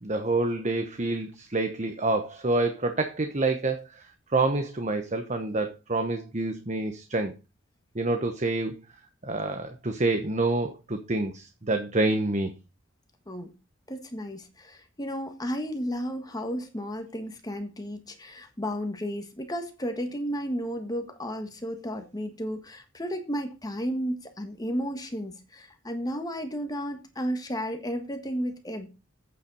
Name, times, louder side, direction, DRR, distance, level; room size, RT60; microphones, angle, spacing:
voice 1, 0.0-4.0 4.3-7.3 7.9-8.8 9.2-12.5, right 2 dB, 35° right, 1.2 m, -27 dB
voice 2, 13.9-28.9, equal, 20° left, 1.5 m, -33 dB
8.8 x 7.5 x 5.4 m
head